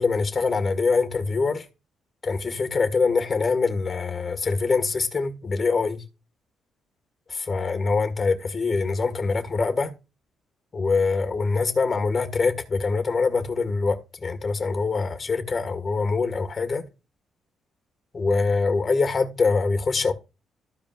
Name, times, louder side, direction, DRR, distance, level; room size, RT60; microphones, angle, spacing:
voice 1, 0.0-1.7 2.2-6.0 7.3-9.9 10.7-16.8 18.1-20.1, left 4 dB, 35° left, 1.7 m, -24 dB
14.5 x 5.1 x 2.5 m
cardioid pair, 90°, 0 cm